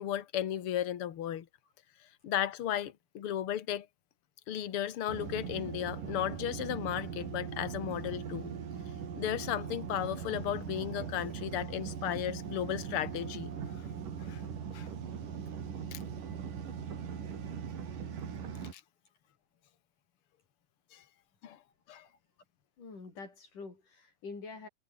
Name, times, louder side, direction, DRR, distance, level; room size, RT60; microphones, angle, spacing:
voice 1, 0.0-1.5 2.2-3.9 4.5-8.5 9.2-13.5 14.3-14.4 14.7-14.9 15.9-16.0 18.7-18.8 20.9-21.0 21.4-21.6 21.9-22.1, left 11 dB, 50° left, 2.1 m, -35 dB
sound 1, 5.1-18.7, right 7 dB, 75° right, 4.7 m, -40 dB
voice 2, 22.8-24.7, left 4 dB, 70° left, 8.3 m, -46 dB
omnidirectional pair, 3.8 m